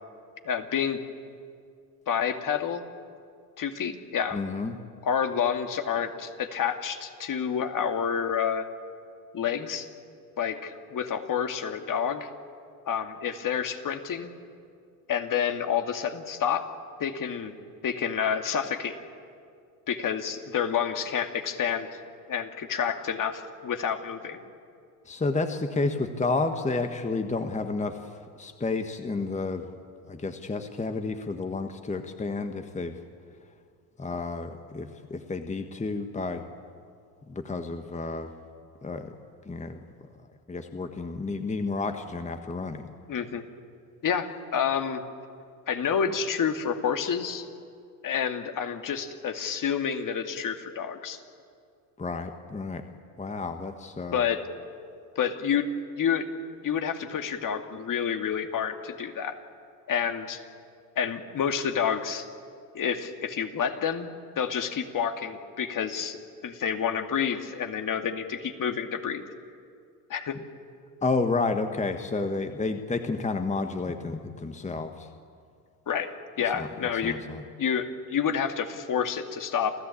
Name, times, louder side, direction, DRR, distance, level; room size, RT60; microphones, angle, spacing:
voice 1, 0.5-1.0 2.1-2.8 3.6-4.4 5.0-8.7 9.3-9.9 10.4-12.3 12.9-14.3 15.1-16.6 17.0-17.5 17.8-19.0 19.9-21.9 22.3-24.4 43.1-43.4 44.0-45.0 45.7-47.5 48.0-51.2 54.1-54.4 55.2-55.7 56.0-56.3 56.6-59.4 59.9-60.4 61.0-62.3 62.7-64.1 64.4-66.2 66.4-69.2 70.1-70.4 75.9-77.2 77.6-79.7, left 7 dB, 40° left, 6 dB, 2.3 m, -29 dB
voice 2, 4.3-4.8 25.0-28.0 28.4-29.7 30.1-33.0 34.0-36.4 37.3-38.3 38.8-39.1 39.4-39.8 40.5-42.9 52.0-52.8 53.2-54.2 71.0-75.1 76.5-76.7 77.0-77.4, left 3 dB, 15° left, 6 dB, 1.5 m, -30 dB
28.5 x 14.5 x 8.6 m, 2.3 s
hypercardioid pair, 75°, 47 cm